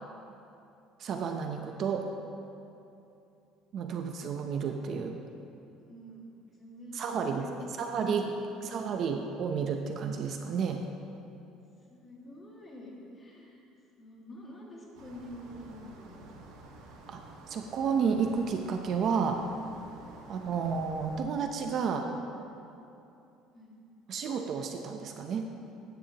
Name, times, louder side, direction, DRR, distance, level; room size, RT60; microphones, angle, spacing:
voice 1, 1.0-2.1 3.7-5.2 6.9-7.4 7.8-8.4 8.6-10.8 17.1-17.2 17.5-19.4 20.3-22.1 24.1-25.5, right 6 dB, 40° right, 4 dB, 0.7 m, -31 dB
voice 2, 5.8-6.3 6.6-8.0 8.5-8.6 11.9-13.6 14.0-16.6 20.1-20.3 23.5-23.8, left 1 dB, 20° left, -3 dB, 2.1 m, -47 dB
sound 1, 14.9-21.2, right 2 dB, 75° right, 1.6 m, -51 dB
16.0 x 10.0 x 3.0 m, 2.7 s
cardioid pair, 150°, 0 cm